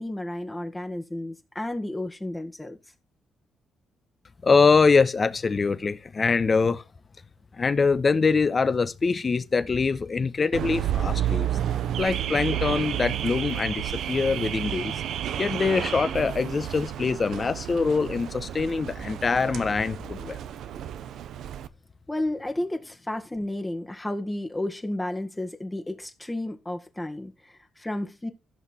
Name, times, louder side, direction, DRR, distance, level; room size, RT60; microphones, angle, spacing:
voice 1, 0.0-2.8 22.1-28.3, left 1 dB, 10° left, 1.7 m, -32 dB
voice 2, 4.4-6.8 7.6-11.5 12.0-14.9 15.4-20.4, left 4 dB, 35° left, 1.2 m, -24 dB
Car / Alarm, 10.5-21.7, right 11 dB, 75° right, 0.8 m, -31 dB
15.0 x 5.9 x 4.5 m
cardioid pair, 90°, 0 cm